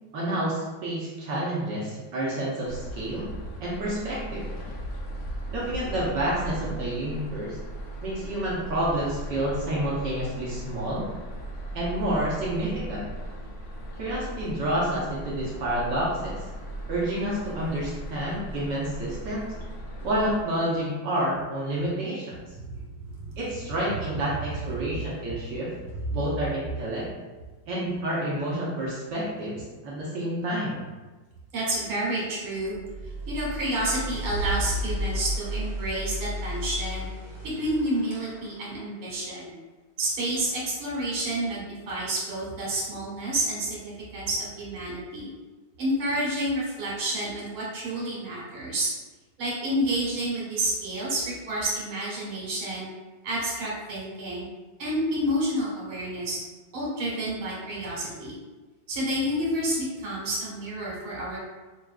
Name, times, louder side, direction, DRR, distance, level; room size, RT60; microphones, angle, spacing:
voice 1, 0.1-3.2 3.6-4.4 5.5-7.6 8.0-11.1 11.7-13.0 14.0-16.4 16.9-19.5 20.0-22.4 23.4-25.7 26.1-27.1 27.7-30.9, right 1 dB, 65° right, -6 dB, 1.3 m, -29 dB
sound 1, 2.6-20.4, right 1 dB, 75° left, 0.8 m, -38 dB
voice 2, 22.6-23.4 26.0-26.2 31.5-32.8 33.3-37.1 37.6-39.5 40.0-45.3 45.8-48.9 49.4-52.9 53.2-54.5 54.8-56.4 56.7-58.4 58.9-61.4, right 1 dB, 80° right, -6 dB, 2.2 m, -29 dB
sound 2, 32.7-38.7, equal, 35° left, 0.9 m, -33 dB
5.9 x 2.5 x 2.3 m, 1.3 s
omnidirectional pair, 2.3 m